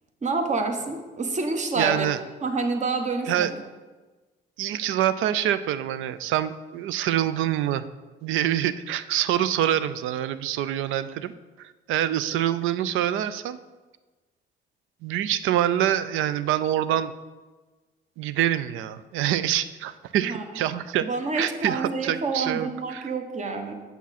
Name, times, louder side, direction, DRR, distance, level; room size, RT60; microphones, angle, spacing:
voice 1, 0.2-2.1 2.4-3.6 20.2-20.4 21.0-23.7, right 3 dB, 35° right, 5 dB, 1.0 m, -28 dB
voice 2, 1.8-2.2 3.3-3.5 4.6-7.9 8.2-11.3 11.6-13.6 15.0-17.1 18.2-21.1 21.3-23.1, right 11 dB, 90° right, 14 dB, 0.4 m, -25 dB
7.0 x 6.1 x 4.2 m, 1.3 s
cardioid pair, 90°, 20 cm